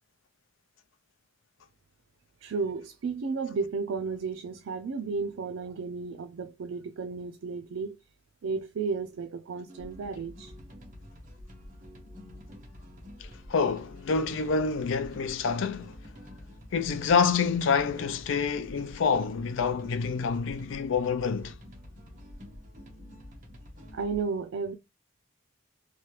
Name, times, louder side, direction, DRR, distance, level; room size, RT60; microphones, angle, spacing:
voice 1, 2.4-8.0 8.4-10.5 23.9-24.7, right 4 dB, 75° right, 0.4 m, -33 dB
sound 1, 9.7-24.2, left 1 dB, 40° right, 0.8 m, -48 dB
voice 2, 13.5-15.9 16.7-21.6, left 5 dB, 65° left, 0.4 m, -27 dB
3.1 x 2.3 x 2.9 m
head